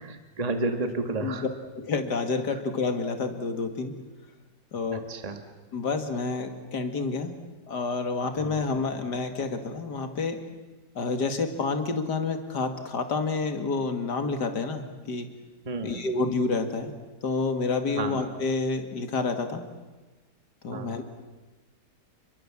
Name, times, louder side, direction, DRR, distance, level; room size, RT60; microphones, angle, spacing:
voice 1, 0.0-1.4 4.9-5.4 8.4-8.6 15.7-16.0 18.0-18.2 20.7-21.0, right 2 dB, 25° right, 7 dB, 1.7 m, -31 dB
voice 2, 1.8-3.9 4.7-5.0 5.7-7.3 7.7-10.4 11.0-15.3 15.8-16.9 17.2-19.6 20.6-21.0, left 4 dB, 70° left, 7 dB, 2.7 m, -29 dB
29.0 x 22.5 x 7.4 m, 1.2 s
omnidirectional pair, 1.8 m